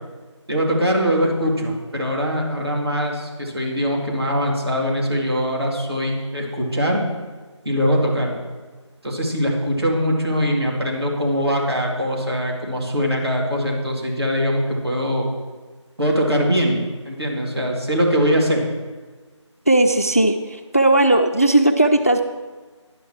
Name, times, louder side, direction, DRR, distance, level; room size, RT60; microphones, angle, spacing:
voice 1, 0.5-7.0 7.6-8.4 9.0-15.3 16.0-18.7, equal, 55° right, -1 dB, 2.5 m, -22 dB
voice 2, 19.7-20.4 20.7-22.2, right 1 dB, 30° left, 7 dB, 0.4 m, -16 dB
11.0 x 5.6 x 6.0 m, 1.4 s
figure-of-eight pair, 170°, 16 cm